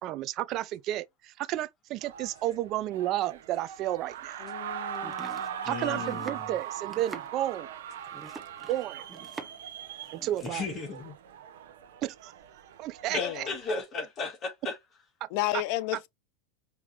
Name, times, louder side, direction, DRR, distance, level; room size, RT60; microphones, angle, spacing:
voice 1, 0.0-4.5 5.6-7.7 8.7-9.0 10.1-10.7 12.0-12.3 12.8-13.5 15.5-15.6 15.9-16.0, right 14 dB, 45° right, 0.6 m, -32 dB
sound 1, 2.0-13.8, right 8 dB, 75° right, 1.0 m, -40 dB
voice 2, 4.4-5.7 13.2-13.5 15.3-16.1, left 16 dB, 60° left, 0.6 m, -33 dB
Domestic sounds home sounds, 4.9-9.7 10.0-10.6, right 4 dB, 15° right, 1.0 m, -45 dB
voice 3, 5.6-6.5 10.4-11.1 13.1-14.8, left 4 dB, 40° left, 1.8 m, -35 dB
5.4 x 2.9 x 3.2 m
hypercardioid pair, 105°, 0 cm